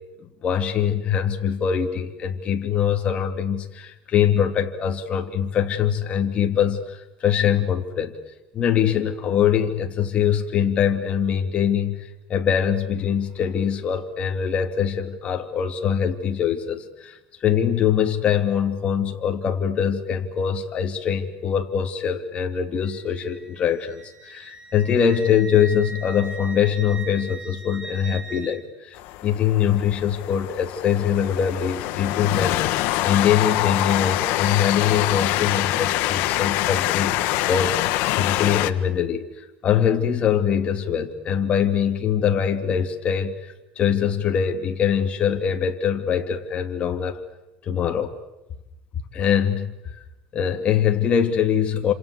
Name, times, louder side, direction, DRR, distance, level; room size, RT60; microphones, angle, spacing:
voice 1, 0.2-8.1 8.5-37.2 37.5-47.2 47.6-48.1 49.1-49.7 50.3-51.9, left 8 dB, 35° left, 3 dB, 3.1 m, -23 dB
Wind instrument woodwind instrument, 22.8-28.6, right 3 dB, 20° right, 4.0 m, -39 dB
Train, 29.0-38.7, left 16 dB, 70° left, 1.4 m, -25 dB
28.5 x 27.0 x 7.0 m, 1.0 s
cardioid pair, 140°, 3 cm